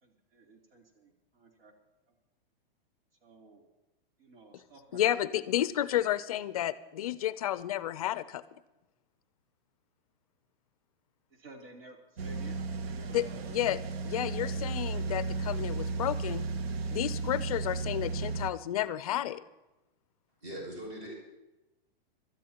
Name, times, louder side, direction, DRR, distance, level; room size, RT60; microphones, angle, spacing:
voice 1, 0.0-1.7 3.2-3.6 4.2-5.0 11.4-12.6 12.8-13.7, right 2 dB, 70° right, 0 dB, 3.4 m, -53 dB
voice 2, 4.9-8.4 13.1-16.5 16.9-19.4, left 12 dB, 40° left, 15 dB, 0.4 m, -31 dB
sound 1, 12.2-18.5, right 4 dB, 90° right, 0.9 m, -34 dB
voice 3, 20.4-21.1, right 1 dB, 45° right, 0 dB, 6.2 m, -40 dB
25.0 x 13.0 x 2.9 m, 1.0 s
supercardioid pair, 175°, 30 cm